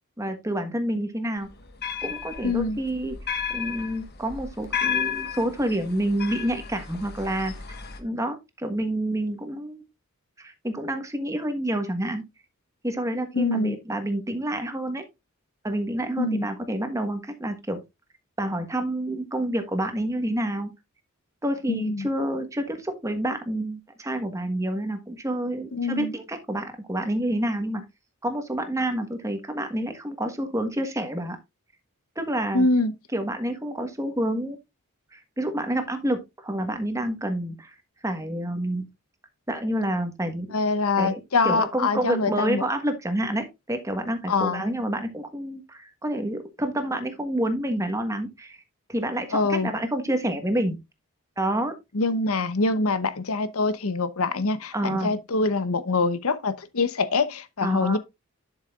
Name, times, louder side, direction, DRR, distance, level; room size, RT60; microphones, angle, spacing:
voice 1, 0.2-1.5 2.0-3.2 3.5-7.5 8.0-9.8 10.4-12.2 12.8-15.0 15.6-17.8 18.4-20.7 21.4-27.8 28.2-31.4 32.1-32.7 33.1-34.6 35.1-37.7 38.0-38.8 39.5-40.5 41.0-48.6 48.9-50.8 51.4-51.7 54.7-55.1 57.6-58.0, right 1 dB, 15° right, 1.4 m, -28 dB
sound 1, 1.4-8.0, left 7 dB, 50° left, 1.3 m, -33 dB
voice 2, 2.4-2.8 13.3-13.8 16.2-16.4 21.7-22.1 25.7-26.1 32.5-32.9 40.5-42.6 44.3-44.6 49.3-49.7 51.9-58.0, left 3 dB, 80° left, 0.9 m, -24 dB
11.5 x 6.6 x 2.5 m
head